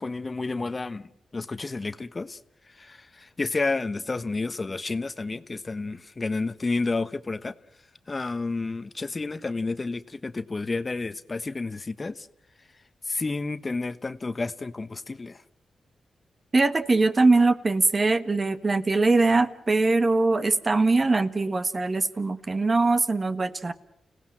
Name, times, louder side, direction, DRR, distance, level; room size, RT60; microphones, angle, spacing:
voice 1, 0.0-2.4 2.7-7.5 8.1-12.3 13.1-15.4, left 3 dB, 35° left, 1.0 m, -30 dB
voice 2, 16.5-23.7, right 3 dB, 40° right, 1.5 m, -22 dB
29.5 x 17.0 x 7.7 m
cardioid pair, 55°, 0 cm